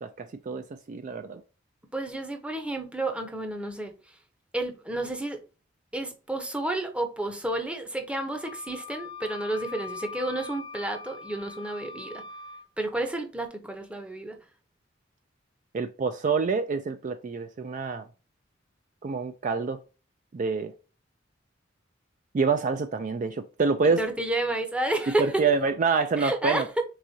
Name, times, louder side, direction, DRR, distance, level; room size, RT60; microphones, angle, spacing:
voice 1, 0.0-1.4 15.7-18.0 19.0-19.8 20.3-20.7 22.3-24.0 25.1-26.6, right 4 dB, 40° right, 0.3 m, -27 dB
voice 2, 1.9-3.9 4.5-5.4 5.9-12.2 12.8-14.4 24.0-25.4 26.1-26.8, right 2 dB, 5° right, 0.7 m, -30 dB
Wind instrument woodwind instrument, 8.4-12.7, left 4 dB, 25° left, 0.4 m, -41 dB
4.8 x 3.6 x 2.7 m
head